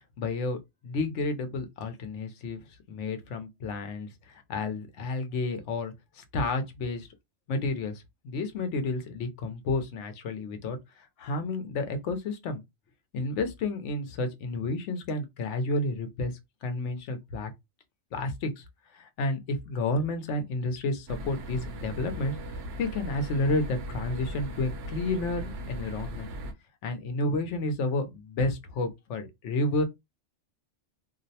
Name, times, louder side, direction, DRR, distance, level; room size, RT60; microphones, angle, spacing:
voice 1, 0.2-2.6 2.9-7.1 7.5-12.6 13.1-16.3 16.6-17.5 18.1-18.6 18.9-26.3 26.8-29.8, left 2 dB, 85° left, 1.0 m, -31 dB
sound 1, 21.1-26.5, right 1 dB, 65° right, 0.8 m, -38 dB
2.6 x 2.0 x 2.7 m
omnidirectional pair, 1.2 m